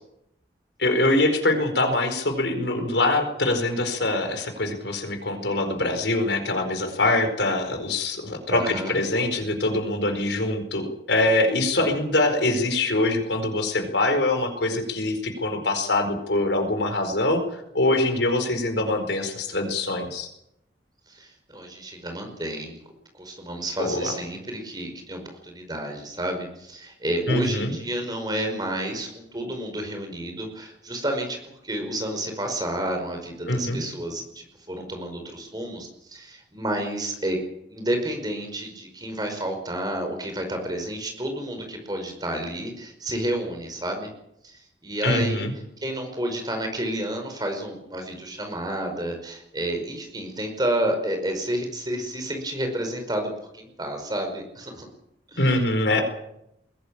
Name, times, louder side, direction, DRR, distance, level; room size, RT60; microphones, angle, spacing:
voice 1, 0.8-20.3 23.8-24.1 27.3-27.7 33.5-33.8 45.0-45.5 55.4-56.0, left 2 dB, 80° left, 6 dB, 4.5 m, -24 dB
voice 2, 8.5-8.9 11.8-12.0 21.1-22.8 23.1-31.4 31.6-37.4 37.7-44.1 44.4-45.5 45.8-54.9 55.3-55.5, right 1 dB, 25° right, 4 dB, 5.2 m, -30 dB
21.5 x 17.5 x 8.8 m, 0.80 s
head